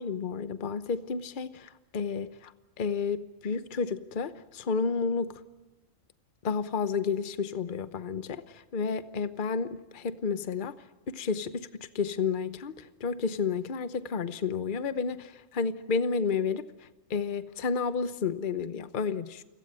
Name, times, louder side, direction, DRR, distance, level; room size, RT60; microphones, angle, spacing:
voice 1, 0.0-2.5 2.8-5.4 6.4-10.8 11.1-19.4, left 5 dB, 45° left, 1.0 m, -31 dB
29.0 x 17.5 x 8.9 m
omnidirectional pair, 1.3 m